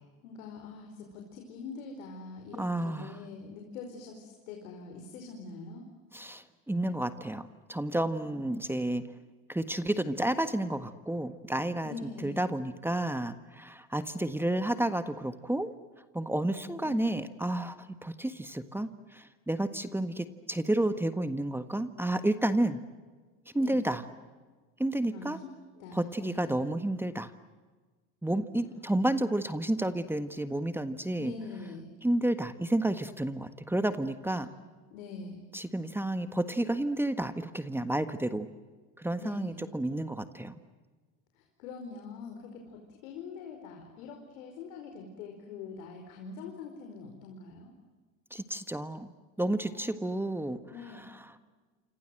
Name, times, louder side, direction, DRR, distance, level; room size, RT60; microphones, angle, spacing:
voice 1, 0.2-5.9 11.8-12.4 16.8-17.0 17.3-17.4 23.5-23.8 25.1-25.5 25.8-26.6 31.2-31.9 34.2-34.5 34.9-35.4 39.2-39.6 41.4-47.7 49.6-50.0 50.7-51.1, left 4 dB, 80° left, 3 dB, 4.9 m, -44 dB
voice 2, 2.6-3.2 6.1-9.1 9.5-11.9 12.2-15.7 16.1-22.8 23.5-24.0 24.8-25.4 25.9-27.3 28.2-31.3 32.0-34.5 35.5-38.5 39.0-40.5 48.3-49.1 49.4-50.6 51.2-51.3, right 1 dB, 5° right, 10 dB, 1.5 m, -31 dB
28.0 x 27.0 x 7.8 m, 1.4 s
supercardioid pair, 100°, 40 cm